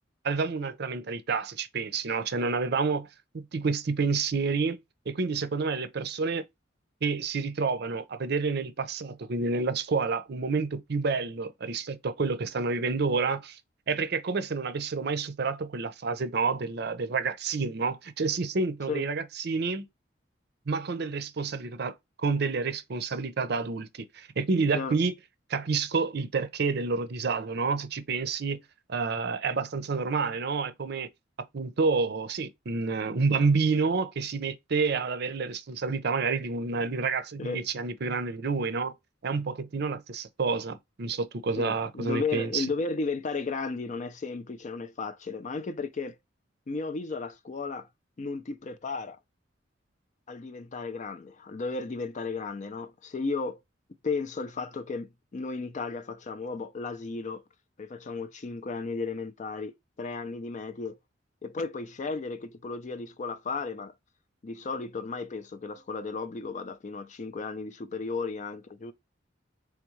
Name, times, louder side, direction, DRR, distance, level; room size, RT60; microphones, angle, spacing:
voice 1, 0.2-3.1 3.3-4.8 5.1-6.5 7.0-13.6 13.9-19.9 20.7-25.1 25.5-28.6 28.9-31.1 31.5-38.9 39.2-42.7, right 4 dB, 55° right, 0.6 m, -29 dB
voice 2, 41.6-46.2 46.7-47.9 48.2-49.2 50.3-53.6 54.0-57.4 57.8-61.0 61.4-63.9 64.4-68.9, left 4 dB, 40° left, 0.4 m, -34 dB
3.6 x 3.4 x 3.1 m
head